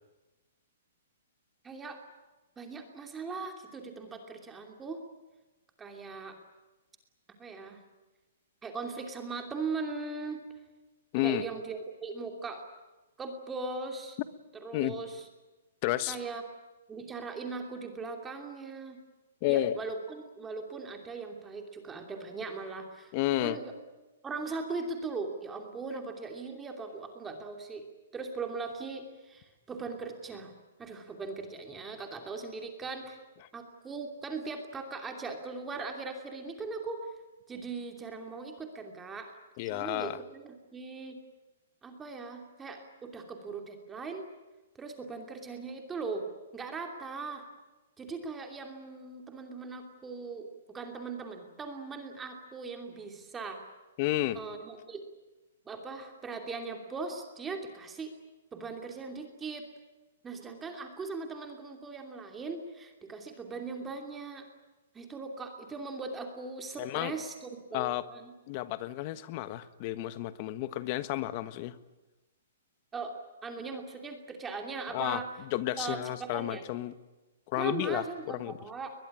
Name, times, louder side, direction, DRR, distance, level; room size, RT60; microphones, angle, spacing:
voice 1, 1.6-2.0 2.6-5.0 5.8-6.4 7.4-7.8 8.6-10.4 11.2-12.6 13.2-14.2 14.6-15.2 16.1-16.4 16.9-19.0 19.5-23.1 23.4-23.7 24.2-27.9 28.1-30.5 30.8-33.2 33.5-37.1 37.5-39.3 39.7-41.2 41.8-44.2 44.7-46.3 46.5-47.5 48.0-53.6 54.3-55.0 55.6-58.1 58.5-59.7 60.2-64.5 64.9-68.3 72.9-73.1 73.4-75.3 75.8-76.6 77.6-78.9, right 4 dB, 10° right, 2.8 m, -39 dB
voice 2, 11.1-11.5 14.7-15.0 15.8-16.2 19.4-19.8 23.1-23.6 39.6-40.2 54.0-54.4 66.8-67.1 67.7-68.1 68.5-71.8 74.9-76.9 77.5-78.6, left 15 dB, 35° left, 1.3 m, -31 dB
22.0 x 21.5 x 10.0 m
hypercardioid pair, 160°, 0 cm